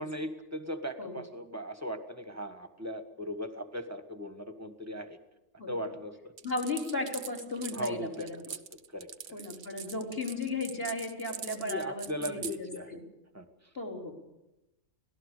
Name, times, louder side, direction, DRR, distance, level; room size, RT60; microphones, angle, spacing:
voice 1, 0.0-5.2 5.7-6.3 7.7-9.4 11.7-13.0 13.3-13.7, equal, 10° right, 8 dB, 1.5 m, -38 dB
voice 2, 6.4-8.4 9.3-13.0 13.8-14.1, left 2 dB, 40° left, 2 dB, 4.1 m, -35 dB
sound 1, 6.4-12.6, right 8 dB, 60° right, 1.2 m, -42 dB
25.5 x 18.0 x 6.8 m, 0.94 s
omnidirectional pair, 1.6 m